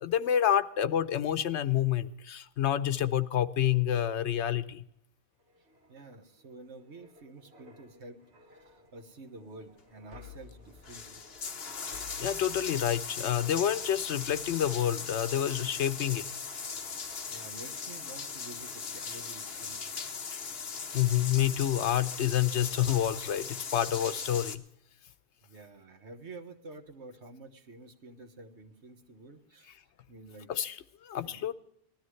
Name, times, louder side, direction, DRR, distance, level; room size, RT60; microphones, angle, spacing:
voice 1, 0.0-4.8 12.2-16.3 20.9-24.6 30.5-31.5, left 10 dB, 90° left, 12 dB, 1.0 m, -28 dB
sound 1, 5.4-17.7 18.1-18.3, left 3 dB, 70° right, 1.8 m, -57 dB
voice 2, 5.9-8.2 8.6-11.2 17.0-19.9 25.4-29.8 30.1-30.5 31.2-31.5, right 2 dB, 85° right, 6 dB, 1.6 m, -49 dB
sound 2, 10.2-10.3 10.7-24.6, left 5 dB, 65° left, 1.2 m, -39 dB
19.5 x 13.0 x 3.2 m, 0.74 s
omnidirectional pair, 1.1 m